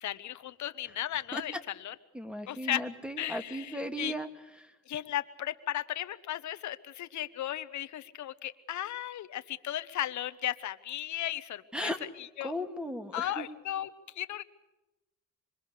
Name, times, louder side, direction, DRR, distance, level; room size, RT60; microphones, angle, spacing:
voice 1, 0.0-1.9 2.5-2.8 3.2-4.1 4.9-11.9 12.4-12.6 13.1-13.9 14.1-14.4, left 12 dB, 70° left, 12 dB, 1.2 m, -35 dB
voice 2, 2.1-4.3 4.6-4.7 11.7-12.0 12.4-13.5, equal, 5° right, 7 dB, 2.1 m, -36 dB
25.5 x 22.0 x 6.8 m, 0.99 s
cardioid pair, 90°, 30 cm